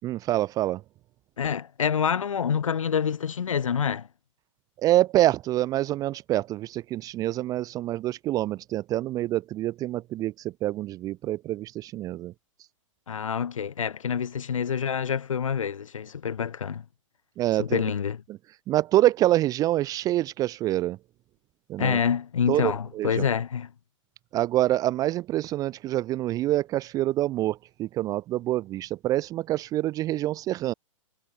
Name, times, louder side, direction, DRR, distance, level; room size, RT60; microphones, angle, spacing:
voice 1, 0.0-0.8 4.8-10.3 10.6-12.3 17.4-17.8 18.7-21.0 21.7-22.0 22.5-23.2 24.3-30.7, right 14 dB, 20° right, 0.4 m, -26 dB
voice 2, 1.4-4.1 13.1-16.9 17.6-18.2 21.8-23.7, left 7 dB, 75° left, 3.9 m, -27 dB
hypercardioid pair, 115°, 17 cm